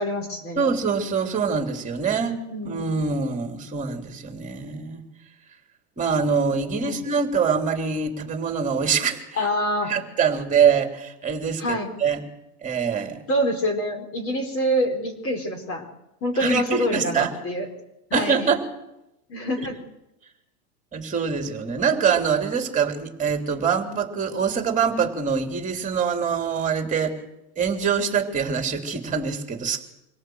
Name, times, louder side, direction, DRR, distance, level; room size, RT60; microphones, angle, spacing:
voice 1, 0.0-0.6 2.2-2.8 6.8-7.0 9.4-9.9 11.6-11.9 13.3-15.9 16.2-17.7 18.1-18.5 19.3-19.8, equal, 30° left, 5 dB, 4.7 m, -26 dB
voice 2, 0.6-2.3 2.6-5.0 6.0-9.4 9.9-12.2 12.6-13.2 16.3-17.3 18.1-18.6 20.9-27.2 27.6-29.8, right 6 dB, 15° right, 5 dB, 3.4 m, -24 dB
25.0 x 17.5 x 8.0 m, 0.90 s
supercardioid pair, 140°, 46 cm